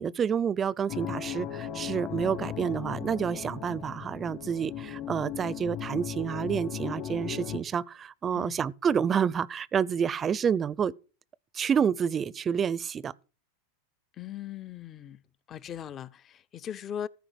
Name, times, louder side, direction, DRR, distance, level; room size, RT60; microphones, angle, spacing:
voice 1, 0.0-10.9 11.5-13.1, right 7 dB, 25° right, 0.6 m, -29 dB
sound 1, 0.9-7.6, left 9 dB, 50° left, 1.8 m, -37 dB
voice 2, 14.2-15.2 15.5-17.1, left 9 dB, 35° left, 0.6 m, -39 dB
14.0 x 5.0 x 8.0 m
hypercardioid pair, 110°, 0 cm